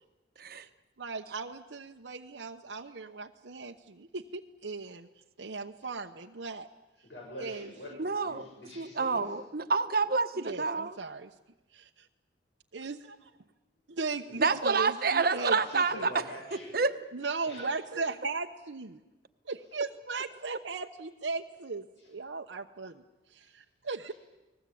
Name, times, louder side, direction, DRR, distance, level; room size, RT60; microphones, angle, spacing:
voice 1, 1.0-5.1 5.4-6.7 7.4-7.7 10.4-11.3 11.7-12.1 12.7-13.3 13.9-16.1 17.1-19.0 19.4-23.0 23.3-24.1, right 4 dB, 85° right, 3 dB, 0.9 m, -37 dB
voice 2, 7.0-9.4 14.3-14.4 15.3-16.8 17.4-17.7 22.0-22.1, left 1 dB, 75° left, -1 dB, 7.4 m, -45 dB
voice 3, 8.0-8.4 8.8-11.0 14.4-16.1 16.7-16.9, right 4 dB, 55° right, 10 dB, 1.2 m, -28 dB
30.0 x 20.5 x 8.6 m, 1.1 s
head